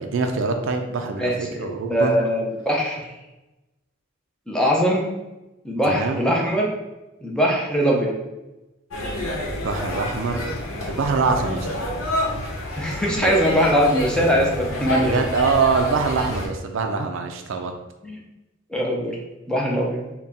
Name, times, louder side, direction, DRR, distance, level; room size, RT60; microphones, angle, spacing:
voice 1, 0.0-2.2 5.9-6.2 9.6-10.4 10.9-11.7 14.9-17.7, right 4 dB, 60° right, 5 dB, 0.4 m, -24 dB
voice 2, 1.2-3.0 4.5-5.0 5.6-6.7 7.2-8.1 12.8-15.1 18.0-18.2 18.7-19.2 19.5-20.1, equal, 5° left, -2 dB, 0.5 m, -21 dB
sound 1, 8.9-16.5, equal, 75° left, 0.9 m, -28 dB
4.1 x 2.2 x 3.6 m, 1.0 s
head